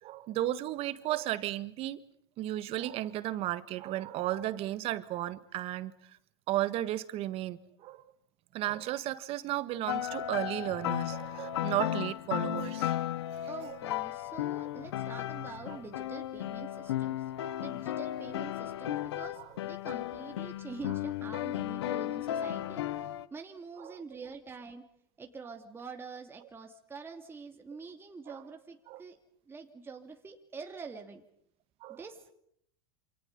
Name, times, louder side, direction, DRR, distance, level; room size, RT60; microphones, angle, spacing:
voice 1, 0.0-2.0 2.4-5.9 6.5-8.1 8.5-13.0 13.6-13.8 15.7-15.8 17.4-17.6 23.8-24.0 28.3-28.4 28.9-29.0 31.8-32.0, right 14 dB, 45° right, 1.6 m, -34 dB
sound 1, 9.9-23.3, left 13 dB, 80° left, 1.0 m, -35 dB
voice 2, 13.5-17.3 17.6-24.8 25.2-29.2 29.5-31.2 31.9-32.2, right 4 dB, 15° right, 2.7 m, -46 dB
28.0 x 27.5 x 5.5 m
hypercardioid pair, 110°, 14 cm